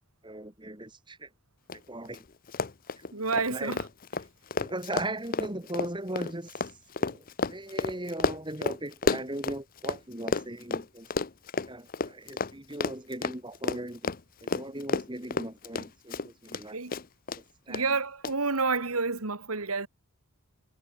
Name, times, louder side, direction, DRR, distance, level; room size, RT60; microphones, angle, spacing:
voice 1, 0.2-1.3 1.7-2.2 3.0-3.8 4.6-6.6 7.0-11.1 11.7-14.1 14.4-16.8 17.7-18.0, right 1 dB, 20° right, 2.8 m, -38 dB
Run, 1.7-1.8 2.1-2.2 2.5-10.0 10.3-16.6 16.9-17.4 17.7-17.8 18.2-18.3, left 4 dB, 40° left, 0.7 m, -31 dB
voice 2, 3.1-3.8 16.7-16.9 17.7-19.9, right 4 dB, 85° right, 2.3 m, -29 dB
head